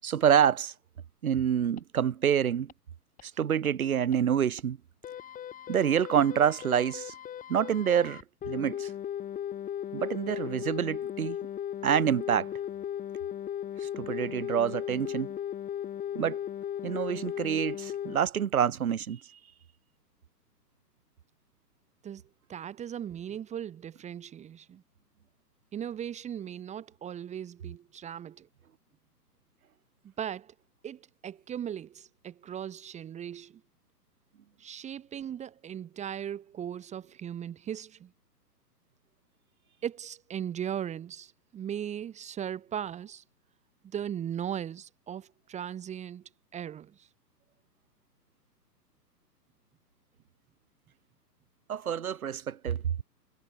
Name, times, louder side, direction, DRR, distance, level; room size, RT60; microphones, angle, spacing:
voice 1, 0.0-0.7 1.2-2.7 3.2-4.8 5.7-7.1 7.5-8.9 9.9-11.4 11.8-12.5 13.8-15.3 16.1-16.4 16.8-19.2 51.7-53.0, right 8 dB, 60° right, 5.3 m, -27 dB
sound 1, 1.8-1.9 2.2-2.3 2.7-2.8 3.2-3.3 3.7-3.8 4.1-4.2 4.6-4.7 5.0-18.2, left 10 dB, 15° left, 7.2 m, -37 dB
voice 2, 22.5-24.8 25.7-28.5 30.0-30.5 30.8-33.6 34.6-38.1 39.8-43.2 43.8-46.2 46.5-47.1, right 9 dB, 15° right, 2.9 m, -38 dB
figure-of-eight pair, 130°, 49 cm